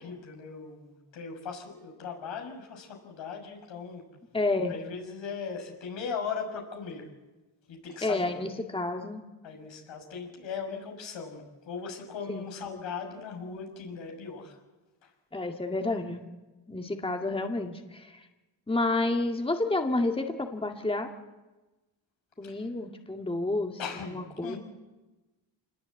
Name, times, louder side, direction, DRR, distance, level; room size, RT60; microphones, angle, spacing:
voice 1, 0.0-4.0 4.7-7.1 7.7-8.4 9.4-14.6 15.0-15.1 22.4-22.7 23.8-24.6, left 5 dB, 90° left, 2 dB, 6.2 m, -38 dB
voice 2, 4.3-4.8 8.0-9.2 12.3-12.4 15.3-16.2 16.7-18.3 18.7-21.1 22.4-24.6, left 2 dB, 10° left, 4 dB, 2.1 m, -30 dB
26.5 x 20.5 x 8.5 m, 1.1 s
cardioid pair, 95°, 44 cm